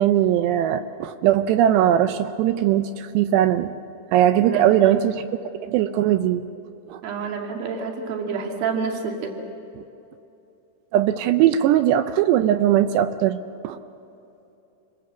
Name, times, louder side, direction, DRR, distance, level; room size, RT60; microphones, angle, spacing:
voice 1, 0.0-3.7 4.1-5.2 5.6-6.4 6.9-7.0 10.9-13.4 13.6-13.8, right 11 dB, 80° right, 10 dB, 2.5 m, -19 dB
voice 2, 4.4-5.1 7.0-9.4, right 5 dB, 55° right, 2 dB, 3.7 m, -28 dB
28.5 x 20.0 x 8.0 m, 2.9 s
omnidirectional pair, 5.6 m